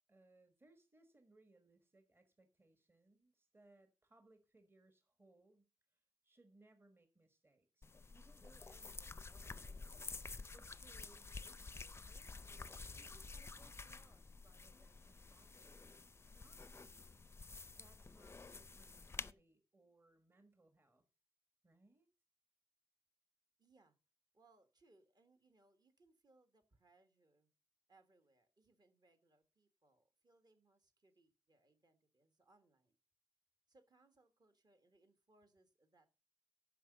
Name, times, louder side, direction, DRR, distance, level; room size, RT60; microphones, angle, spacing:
voice 1, 0.1-9.8 10.5-15.9 16.3-17.2 17.7-21.0 21.6-22.1, right 2 dB, 25° right, 7 dB, 1.3 m, -69 dB
sound 1, 7.8-19.3, left 4 dB, 25° left, 0.5 m, -51 dB
voice 2, 23.6-24.0 24.3-27.5 27.9-33.0 33.7-36.1, right 2 dB, 40° right, 8 dB, 1.6 m, -72 dB
10.0 x 6.2 x 6.6 m, 0.32 s
wide cardioid pair, 140°, 10 cm